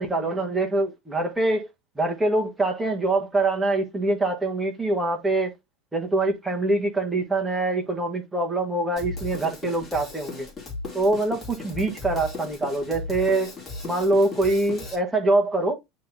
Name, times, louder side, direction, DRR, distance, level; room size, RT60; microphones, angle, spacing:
voice 1, 0.0-1.7 1.9-5.5 5.9-10.5 10.9-13.6 13.8-15.7, right 2 dB, 5° right, 1.5 m, -24 dB
Drum kit, 9.0-15.0, left 3 dB, 15° left, 2.5 m, -36 dB
9.3 x 3.8 x 2.8 m
supercardioid pair, 150°, 0 cm